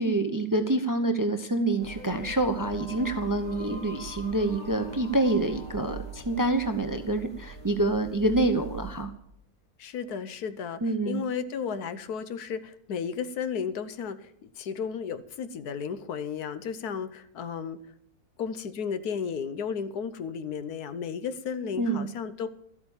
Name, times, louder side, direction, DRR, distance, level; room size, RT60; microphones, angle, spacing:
voice 1, 0.0-9.1 10.8-11.2 21.8-22.1, right 2 dB, 20° right, 7 dB, 0.6 m, -27 dB
sound 1, 1.8-9.0, right 3 dB, 5° left, 2.8 m, -42 dB
voice 2, 9.8-17.8 18.4-22.5, left 6 dB, 85° left, 13 dB, 1.4 m, -34 dB
13.0 x 8.3 x 7.1 m, 0.72 s
omnidirectional pair, 1.6 m